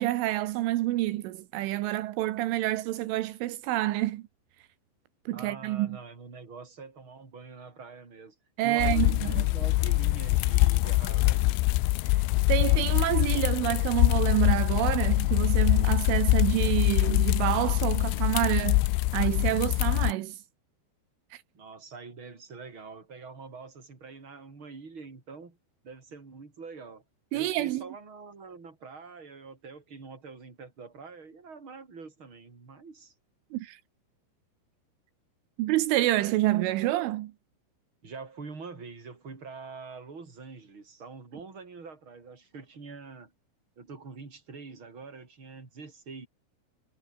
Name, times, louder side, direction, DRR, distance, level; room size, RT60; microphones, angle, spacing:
voice 1, 0.0-4.2 5.3-6.0 8.6-9.5 12.5-18.9 19.1-20.4 27.3-27.8 33.5-33.8 35.6-37.3, right 16 dB, 80° right, 3.6 m, -28 dB
voice 2, 5.3-8.4 8.6-11.7 21.5-25.6 25.8-27.0 27.3-33.1 38.0-43.3 43.8-46.3, right 4 dB, 25° right, 5.4 m, -45 dB
sound 1, 8.8-20.1, left 20 dB, 85° left, 3.2 m, -24 dB
omnidirectional pair, 5.6 m